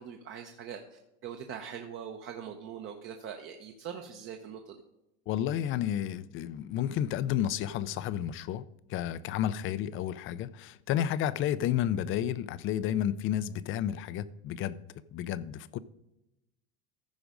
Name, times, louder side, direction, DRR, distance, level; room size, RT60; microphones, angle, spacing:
voice 1, 0.0-4.8, right 8 dB, 35° right, 0.9 m, -42 dB
voice 2, 5.3-8.6 8.9-14.8 15.1-15.8, left 11 dB, 40° left, 0.5 m, -31 dB
14.5 x 5.1 x 5.1 m
supercardioid pair, 125°, 33 cm